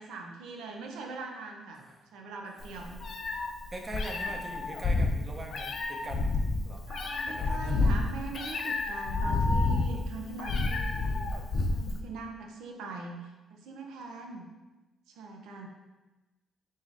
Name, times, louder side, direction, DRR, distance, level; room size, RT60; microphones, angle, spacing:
voice 1, 0.0-1.8 2.1-3.0 4.3-4.4 6.9-11.3 11.7-14.5 15.1-15.7, right 3 dB, 85° right, 2 dB, 0.6 m, -42 dB
Meow, 2.6-12.0, left 3 dB, 50° left, 0.5 m, -29 dB
voice 2, 3.7-6.2 6.6-6.8 7.3-7.8, right 2 dB, 30° right, 2 dB, 0.7 m, -42 dB
3.7 x 2.7 x 4.7 m, 1.1 s
cardioid pair, 90°, 0 cm